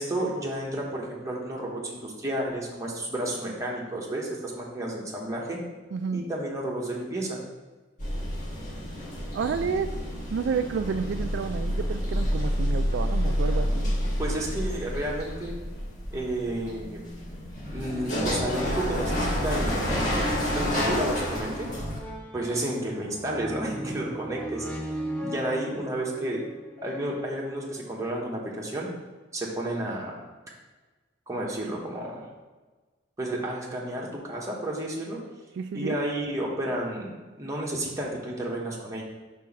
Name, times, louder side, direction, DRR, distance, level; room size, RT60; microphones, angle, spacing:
voice 1, 0.0-5.6 6.1-7.4 14.2-15.5 16.1-17.1 17.7-21.7 22.3-24.7 25.2-26.4 26.8-28.9 29.3-30.1 31.3-32.3 33.2-35.2 35.7-37.1 37.4-39.0, right 1 dB, 15° right, -3 dB, 1.2 m, -31 dB
voice 2, 5.9-6.2 9.3-9.9 10.3-13.9 35.6-36.0, right 6 dB, 65° right, 8 dB, 0.3 m, -30 dB
sound 1, 8.0-22.0, equal, 40° left, 1.7 m, -29 dB
sound 2, 21.9-27.8 28.5-28.6, equal, 10° left, 0.8 m, -38 dB
4.7 x 4.2 x 5.8 m, 1.3 s
head